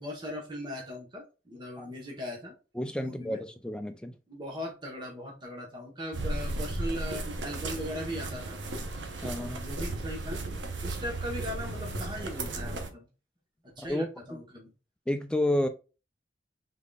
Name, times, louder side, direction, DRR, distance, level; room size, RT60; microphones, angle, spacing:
voice 1, 0.0-2.5 3.0-3.4 4.3-8.6 9.4-13.1 13.6-14.7, equal, 25° right, -1 dB, 1.0 m, -39 dB
voice 2, 2.8-4.1 9.2-9.6 13.8-14.1 15.1-15.7, left 1 dB, 5° left, 7 dB, 0.4 m, -30 dB
sound 1, 6.1-12.9, right 2 dB, 90° right, 0.8 m, -35 dB
3.8 x 3.5 x 2.3 m, 0.31 s
head